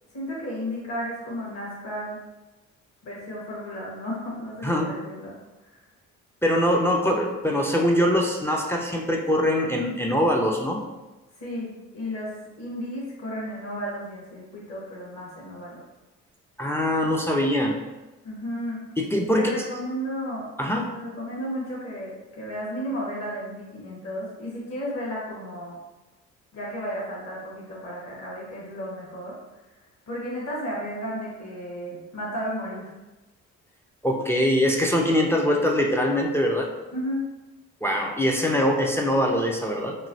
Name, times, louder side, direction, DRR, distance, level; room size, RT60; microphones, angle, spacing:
voice 1, 0.1-2.2 3.0-5.4 5.6-5.7 11.4-15.8 18.2-18.8 19.3-20.5 20.9-25.8 26.5-29.4 30.1-32.9 36.9-37.3, equal, 60° left, -5 dB, 1.3 m, -33 dB
voice 2, 4.6-4.9 6.4-10.8 16.6-17.8 19.0-19.5 20.6-20.9 34.0-36.7 37.8-40.0, equal, 10° left, 0 dB, 0.3 m, -23 dB
3.0 x 2.6 x 2.6 m, 1.1 s
cardioid pair, 90°, 30 cm